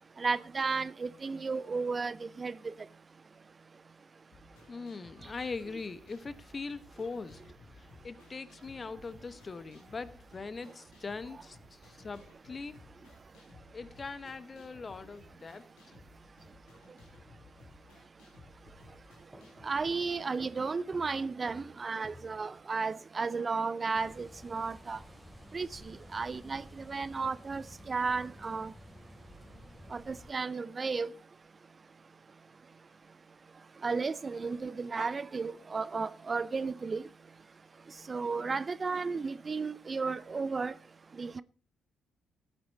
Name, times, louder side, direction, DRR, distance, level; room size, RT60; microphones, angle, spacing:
voice 1, 0.2-2.7 19.6-25.0 25.5-28.7 29.9-31.1 33.8-37.0 38.1-40.7 41.2-41.4, right 4 dB, 40° right, 0.6 m, -34 dB
sound 1, 4.3-20.2, left 3 dB, 75° left, 3.1 m, -58 dB
voice 2, 4.7-7.4 7.8-12.8 13.7-15.7, left 4 dB, 40° left, 1.1 m, -41 dB
sound 2, 19.3-23.0, equal, 5° right, 3.4 m, -56 dB
sound 3, 23.9-30.3, left 1 dB, 20° left, 3.7 m, -52 dB
14.5 x 9.2 x 4.1 m
hypercardioid pair, 45°, 0 cm